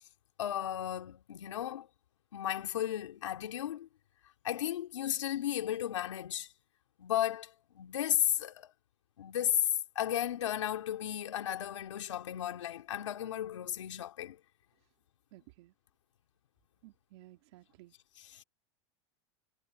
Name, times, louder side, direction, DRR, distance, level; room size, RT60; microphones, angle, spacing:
voice 1, 0.4-1.9 2.3-3.9 4.4-6.5 7.0-8.7 9.2-14.4 18.2-18.4, left 11 dB, 90° left, 2.9 m, -34 dB
voice 2, 15.3-15.7 16.8-17.9, right 17 dB, 65° right, 2.9 m, -56 dB
hypercardioid pair, 120°, 15 cm